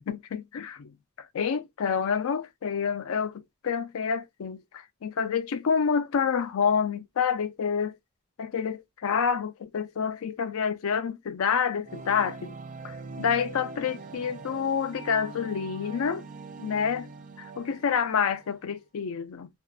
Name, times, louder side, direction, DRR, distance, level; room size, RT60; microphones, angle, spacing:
voice 1, 0.1-8.0 8.4-12.5 12.8-16.2 16.6-17.1 17.4-19.5, left 6 dB, 70° left, 0.4 m, -28 dB
sound 1, 11.8-18.7, right 4 dB, 40° right, 0.4 m, -43 dB
2.5 x 2.1 x 2.3 m
head